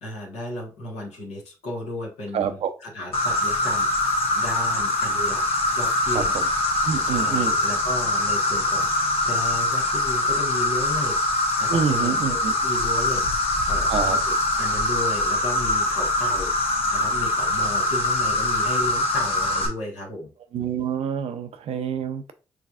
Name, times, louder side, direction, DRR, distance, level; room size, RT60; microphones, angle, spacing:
voice 1, 0.0-5.4 5.7-6.4 7.0-11.2 11.6-20.3, left 1 dB, 75° left, 1.5 m, -34 dB
voice 2, 2.3-2.7 6.1-6.5 6.8-7.6 11.7-12.5 13.9-14.2 20.5-22.3, right 7 dB, 65° right, 0.6 m, -27 dB
Insect, 3.1-19.7, left 2 dB, 60° left, 1.2 m, -23 dB
4.9 x 3.2 x 2.5 m
hypercardioid pair, 40°, 11 cm